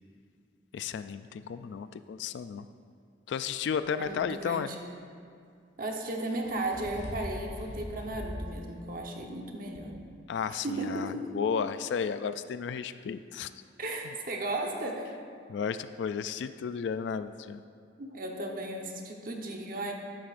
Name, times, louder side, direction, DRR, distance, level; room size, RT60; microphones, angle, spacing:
voice 1, 0.7-2.7 3.3-4.7 10.3-13.5 15.5-17.6, left 6 dB, 65° left, 12 dB, 0.3 m, -33 dB
sound 1, 4.0-4.1 6.1-8.4 8.9-9.0 9.7-9.8, equal, 85° left, 2.5 m, -41 dB
voice 2, 4.0-4.8 5.8-9.9 10.6-11.3 13.8-15.1 18.0-19.9, right 2 dB, 50° right, 1 dB, 1.0 m, -35 dB
12.5 x 12.0 x 2.5 m, 2.3 s
head